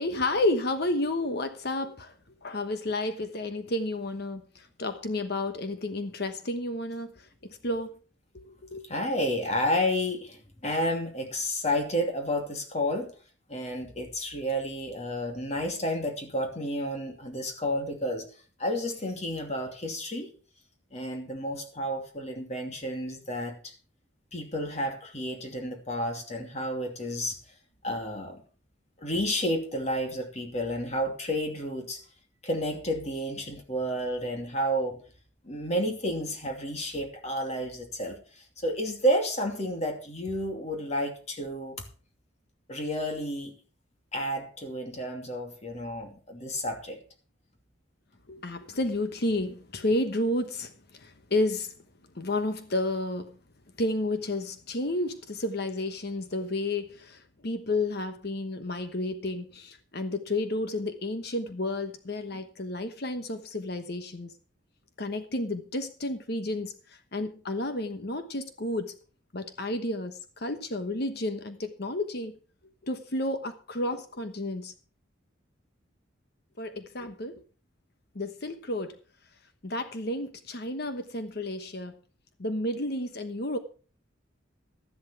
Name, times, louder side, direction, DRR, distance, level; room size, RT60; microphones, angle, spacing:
voice 1, 0.0-2.1 2.4-7.9 8.3-8.8 48.3-51.7 52.1-53.3 53.8-64.3 65.0-68.9 69.3-72.3 72.8-74.7 76.6-77.4 78.1-78.9 79.6-81.9 82.4-83.6, left 2 dB, 55° left, 1.2 m, -31 dB
voice 2, 8.8-13.1 13.5-20.3 20.9-23.7 24.3-27.4 27.8-28.4 29.0-32.0 32.4-35.0 35.4-41.8 42.7-43.6 44.1-47.0, equal, 35° left, 2.7 m, -31 dB
13.0 x 11.5 x 4.6 m
head